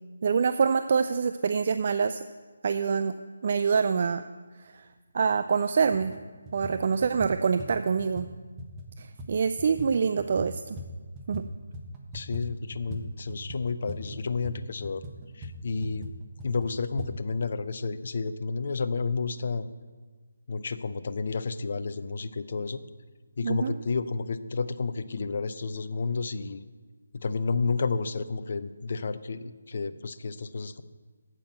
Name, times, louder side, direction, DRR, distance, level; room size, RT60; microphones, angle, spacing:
voice 1, 0.2-2.2 2.6-3.1 3.4-4.2 4.6-4.9 5.1-6.2 6.5-8.3 9.0-10.8 11.3-11.5 23.4-23.7, right 5 dB, 45° right, 10 dB, 0.3 m, -25 dB
sound 1, 5.3-5.4 5.9-6.2 6.4-11.5 11.7-17.1, equal, 15° right, 1.2 m, -41 dB
voice 2, 12.1-15.0 15.3-16.1 16.4-19.7 20.5-22.8 23.4-26.6 27.1-30.8, left 4 dB, 50° left, 12 dB, 0.6 m, -31 dB
8.7 x 7.7 x 7.4 m, 1.4 s
figure-of-eight pair, 150°, 0 cm